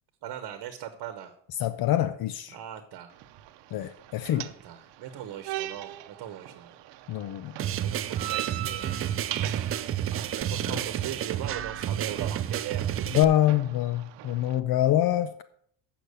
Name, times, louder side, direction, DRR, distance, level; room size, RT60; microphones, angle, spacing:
voice 1, 0.2-1.3 2.5-3.1 4.2-6.7 7.8-8.9 10.3-13.1, right 10 dB, 60° right, 8 dB, 1.0 m, -39 dB
voice 2, 1.6-2.6 3.7-4.5 7.1-7.5 13.1-15.4, left 12 dB, 60° left, 13 dB, 0.6 m, -25 dB
sound 1, 3.1-14.6, right 13 dB, 80° right, 0.8 m, -41 dB
sound 2, 7.6-13.2, right 10 dB, 35° right, 0.4 m, -30 dB
8.1 x 5.9 x 6.8 m, 0.64 s
cardioid pair, 145°, 42 cm